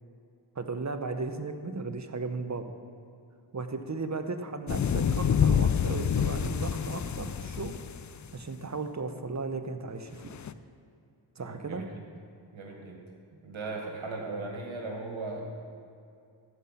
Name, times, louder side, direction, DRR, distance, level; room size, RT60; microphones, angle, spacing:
voice 1, 0.6-2.7 3.5-7.8 8.3-10.2 11.4-11.8, right 3 dB, 35° right, 7 dB, 0.9 m, -35 dB
sound 1, 4.7-8.3 10.3-10.5, left 8 dB, 40° left, 0.4 m, -27 dB
voice 2, 11.4-11.9 12.5-13.0 13.4-15.4, right 3 dB, 85° right, 0 dB, 1.9 m, -37 dB
14.5 x 5.8 x 5.7 m, 2.5 s
cardioid pair, 55°, 46 cm